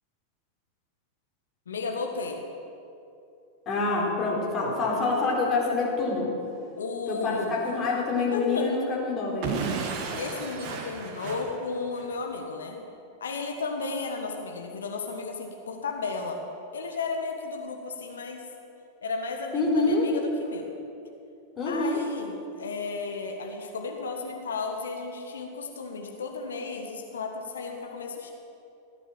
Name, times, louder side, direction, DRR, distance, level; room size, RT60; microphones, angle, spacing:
voice 1, 1.7-2.4 6.8-7.6 8.3-8.7 10.1-12.8 13.2-16.4 16.7-18.5 19.0-20.7 21.7-28.3, left 4 dB, 65° left, 3 dB, 1.5 m, -34 dB
voice 2, 3.7-6.3 7.1-9.6 19.5-20.1 21.6-22.0, left 3 dB, 30° left, -3 dB, 4.3 m, -26 dB
Explosion / Shatter, 9.4-12.2, right 5 dB, 40° right, 1.7 m, -33 dB
16.5 x 10.0 x 7.3 m, 2.7 s
figure-of-eight pair, 90°, 0 cm